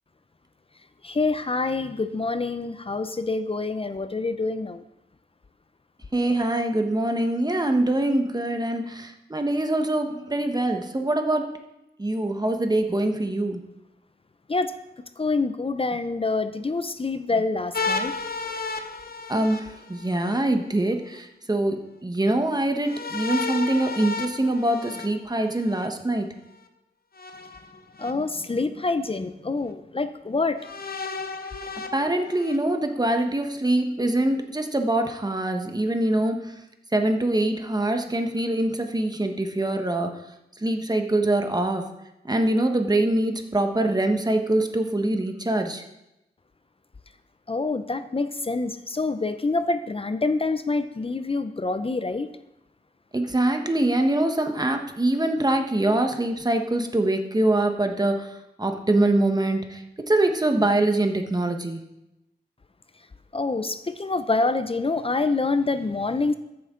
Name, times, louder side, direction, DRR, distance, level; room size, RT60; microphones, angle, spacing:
voice 1, 1.0-4.8 14.5-14.7 15.2-18.1 28.0-30.6 47.5-52.3 63.3-66.3, left 3 dB, 35° left, 11 dB, 0.5 m, -26 dB
voice 2, 6.1-11.5 12.0-13.6 19.3-21.8 22.0-26.3 31.9-36.4 36.9-40.1 40.6-41.8 42.2-45.8 53.1-58.3 58.6-59.8 60.1-61.8, right 1 dB, 25° right, 5 dB, 1.2 m, -24 dB
sound 1, 17.7-20.4 22.8-25.9 27.2-28.1 28.9-29.0 30.6-32.6, left 4 dB, 60° left, 0.9 m, -33 dB
13.5 x 7.8 x 3.8 m, 0.90 s
wide cardioid pair, 75°, 17 cm